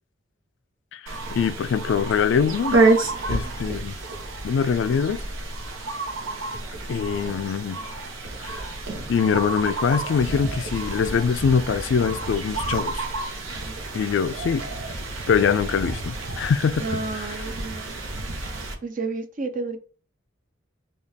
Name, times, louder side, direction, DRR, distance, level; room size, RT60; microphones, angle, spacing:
voice 1, 0.9-2.8 3.3-3.9 4.4-5.2 6.9-7.8 8.4-8.7 9.1-13.1 13.9-14.6 15.3-17.3, left 6 dB, 65° left, 0.3 m, -23 dB
sound 1, 1.1-18.7, right 2 dB, 90° right, 0.9 m, -29 dB
voice 2, 16.8-18.0 18.8-19.8, right 3 dB, 45° right, 0.6 m, -32 dB
5.0 x 2.4 x 2.8 m
head